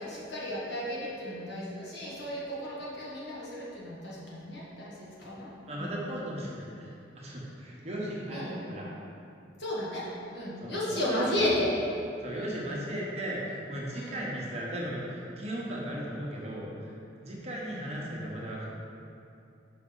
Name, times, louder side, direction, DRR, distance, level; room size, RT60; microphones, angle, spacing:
voice 1, 0.0-6.3 8.3-8.5 9.6-11.7 12.3-12.6 13.9-14.2, left 1 dB, 65° left, -6 dB, 1.4 m, -34 dB
voice 2, 5.7-6.9 7.1-8.9 10.6-11.6 12.2-18.7, equal, 35° right, -4 dB, 0.9 m, -37 dB
5.7 x 5.0 x 3.8 m, 2.6 s
head